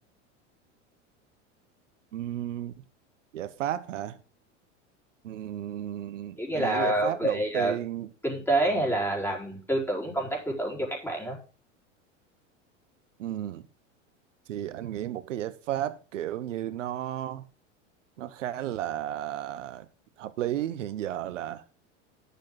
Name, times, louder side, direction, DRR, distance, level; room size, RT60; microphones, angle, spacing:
voice 1, 2.1-2.7 3.3-4.2 5.2-8.1 13.2-13.6 14.5-17.4 18.2-19.8 20.2-21.6, right 12 dB, 80° right, 1.1 m, -33 dB
voice 2, 6.4-7.7 8.2-11.4, right 1 dB, 5° left, 4.7 m, -27 dB
10.5 x 7.4 x 3.8 m
hypercardioid pair, 95°, 37 cm